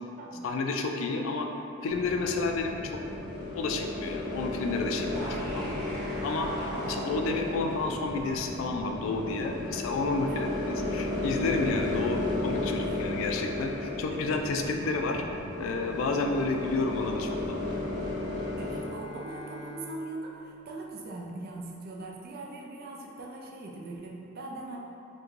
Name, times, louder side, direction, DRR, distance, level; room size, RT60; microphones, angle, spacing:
voice 1, 0.4-1.5 1.8-3.0 3.5-5.7 6.2-17.8, left 3 dB, 70° left, 3 dB, 0.3 m, -31 dB
sound 1, 1.9-18.8, left 2 dB, 5° left, 0.9 m, -34 dB
voice 2, 10.3-10.6 12.6-13.0 14.1-14.4 18.6-24.8, right 2 dB, 50° right, -2 dB, 0.4 m, -41 dB
Bowed string instrument, 17.4-21.5, right 1 dB, 20° left, 0.6 m, -47 dB
3.0 x 2.1 x 3.6 m, 2.7 s
head